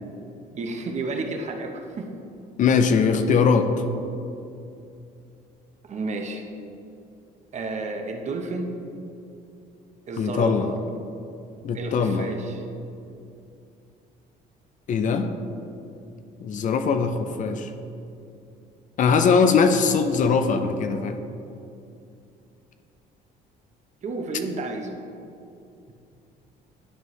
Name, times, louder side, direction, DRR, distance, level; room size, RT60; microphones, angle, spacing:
voice 1, 0.5-2.1 5.8-6.4 7.5-8.7 10.1-10.8 11.7-12.6 24.0-24.9, right 3 dB, 45° right, 4 dB, 0.8 m, -31 dB
voice 2, 2.6-3.7 10.2-10.7 11.6-12.3 14.9-15.3 16.4-17.7 19.0-21.2, left 5 dB, 50° left, 8 dB, 0.5 m, -21 dB
11.0 x 4.6 x 3.2 m, 2.6 s
cardioid pair, 110°, 17 cm